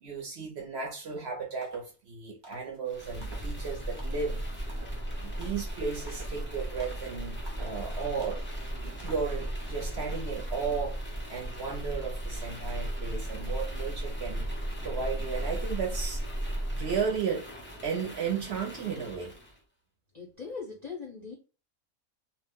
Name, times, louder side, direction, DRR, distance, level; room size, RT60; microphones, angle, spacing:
voice 1, 0.0-4.4 5.2-8.4 8.7-14.5 14.8-16.2 16.7-17.5 17.8-19.3, right 5 dB, 60° right, 0.7 m, -34 dB
sound 1, 1.1-1.3 1.6-2.0 2.4-2.8 3.2-3.6 4.0-4.3 4.7-5.0 5.4-5.8 6.1-6.4 6.8-7.1 7.5-7.8 8.2-8.5 9.0-9.3, right 2 dB, 35° right, 0.4 m, -51 dB
sound 2, 2.9-19.6, right 1 dB, 10° left, 0.6 m, -36 dB
voice 2, 20.1-21.3, left 5 dB, 50° left, 0.5 m, -40 dB
2.4 x 2.1 x 3.4 m
omnidirectional pair, 1.5 m